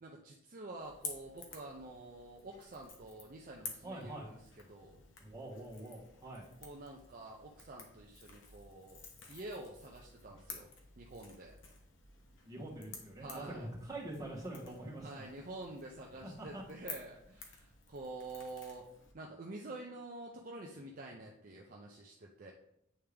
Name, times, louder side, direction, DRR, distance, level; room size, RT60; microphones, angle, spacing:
voice 1, 0.0-5.0 6.6-10.7 11.0-11.6 13.2-13.7 15.0-18.9 19.1-22.5, right 2 dB, 45° right, -1 dB, 0.6 m, -48 dB
Crackle / Crack, 0.8-19.1, left 4 dB, 80° left, 1.1 m, -52 dB
voice 2, 3.8-4.3 5.2-6.4 12.4-15.3 16.2-16.6, right 1 dB, 20° right, -5 dB, 1.6 m, -45 dB
8.6 x 3.4 x 3.4 m, 0.75 s
head